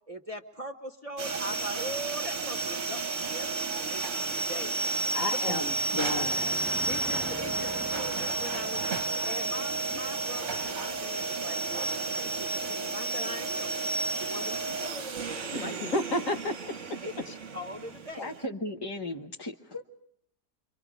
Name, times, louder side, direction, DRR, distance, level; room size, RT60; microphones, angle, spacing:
voice 1, 0.1-4.8 6.9-8.8 9.2-13.7 14.2-15.0 15.6-15.7 17.0-17.1 17.5-18.3, equal, 25° right, 4 dB, 1.2 m, -41 dB
sound 1, 1.2-18.4, right 3 dB, 50° right, 1.4 m, -32 dB
voice 2, 5.1-6.6 15.5-16.6 16.9-17.0 17.3-17.4, left 1 dB, 55° left, 6 dB, 1.4 m, -32 dB
Motor vehicle (road), 5.4-18.1, equal, ahead, 1.4 m, -47 dB
voice 3, 5.9-6.3 18.2-19.8, left 1 dB, 20° left, 0 dB, 0.7 m, -36 dB
29.5 x 25.0 x 5.1 m, 0.69 s
omnidirectional pair, 1.8 m